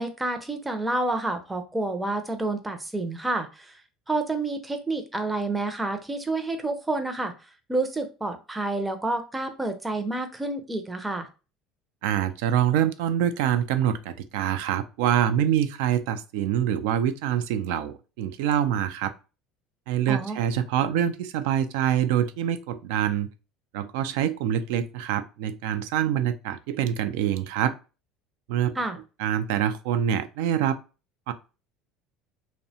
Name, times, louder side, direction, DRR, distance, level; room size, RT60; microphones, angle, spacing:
voice 1, 0.0-3.8 4.1-7.3 7.7-11.3 20.1-20.4 28.8-29.0, right 2 dB, 10° right, 6 dB, 0.5 m, -29 dB
voice 2, 12.0-19.1 19.9-23.3 23.7-27.8 28.5-28.8 29.2-30.8 31.3-31.4, right 10 dB, 80° right, 11 dB, 0.3 m, -25 dB
2.7 x 2.1 x 2.7 m, 0.32 s
supercardioid pair, 100°, 0 cm